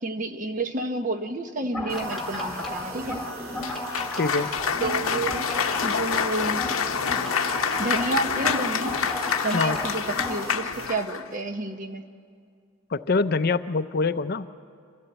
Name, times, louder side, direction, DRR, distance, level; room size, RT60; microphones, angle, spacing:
voice 1, 0.0-3.2 4.8-5.5 5.8-6.7 7.8-9.0 9.4-12.0, right 2 dB, 40° right, 7 dB, 1.0 m, -30 dB
sound 1, 1.6-10.5, left 1 dB, ahead, 1.9 m, -34 dB
sound 2, 1.9-10.9, right 2 dB, 75° right, 2.3 m, -41 dB
Cheering / Applause, 3.6-11.3, left 7 dB, 80° left, 0.8 m, -27 dB
voice 2, 4.1-4.5 9.5-9.8 12.9-14.5, left 3 dB, 45° left, 12 dB, 0.5 m, -24 dB
25.5 x 15.0 x 8.1 m, 2.2 s
head